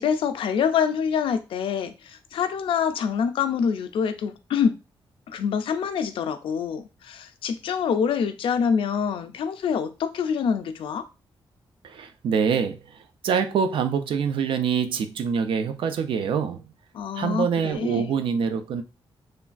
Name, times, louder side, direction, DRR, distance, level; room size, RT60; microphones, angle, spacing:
voice 1, 0.0-4.8 5.3-11.0 16.9-18.1, left 7 dB, 75° left, 0.4 m, -26 dB
voice 2, 11.8-16.6 17.2-18.8, right 6 dB, 70° right, 0.4 m, -25 dB
3.1 x 2.2 x 2.4 m
wide cardioid pair, 180°, 9 cm